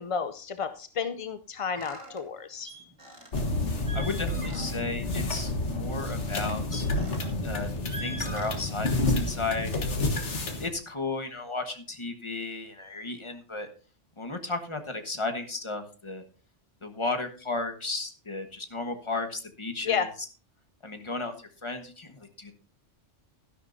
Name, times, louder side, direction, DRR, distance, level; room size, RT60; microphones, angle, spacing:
voice 1, 0.0-2.7 19.8-20.1, left 6 dB, 50° left, 9 dB, 0.4 m, -31 dB
sound 1, 1.7-2.2 2.6-3.4 3.7-4.9 5.3-5.5 6.2-7.4 7.8-9.0, right 1 dB, 25° right, 2.1 m, -42 dB
sound 2, 3.3-10.7, left 2 dB, 65° left, 1.8 m, -29 dB
voice 2, 3.9-6.9 7.4-10.0 10.6-13.7 14.2-16.2 16.8-20.1 20.8-22.5, left 3 dB, 25° left, 6 dB, 1.3 m, -34 dB
12.5 x 11.5 x 2.7 m, 0.38 s
omnidirectional pair, 1.3 m